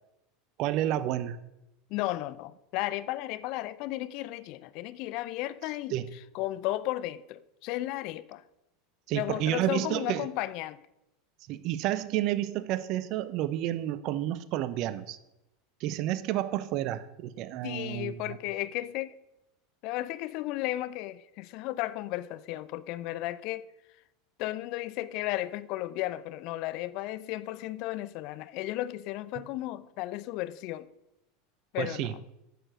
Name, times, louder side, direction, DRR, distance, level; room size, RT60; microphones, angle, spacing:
voice 1, 0.6-1.4 5.9-6.1 9.1-10.3 11.5-15.2 15.8-18.4 29.4-29.5 31.8-32.1, right 13 dB, 50° right, 0.6 m, -30 dB
voice 2, 1.9-5.9 6.3-8.4 9.1-10.8 17.6-19.2 19.8-23.7 24.4-30.9 31.7-32.2, left 16 dB, 55° left, 0.5 m, -34 dB
8.9 x 6.7 x 6.2 m
figure-of-eight pair, 80°, 0 cm